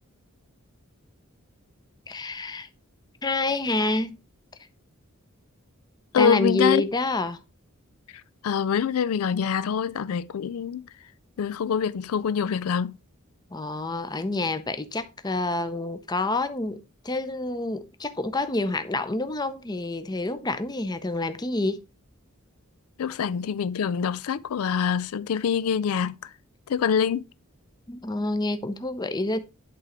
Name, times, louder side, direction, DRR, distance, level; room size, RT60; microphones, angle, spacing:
voice 1, 2.1-2.7 3.2-4.2 6.2-7.4 13.5-21.8 27.9-29.4, left 2 dB, 20° left, 0.6 m, -28 dB
voice 2, 6.1-6.9 8.4-10.9 11.4-13.0 23.0-26.3 26.7-27.3, left 7 dB, 85° left, 0.4 m, -25 dB
11.5 x 3.8 x 4.3 m
head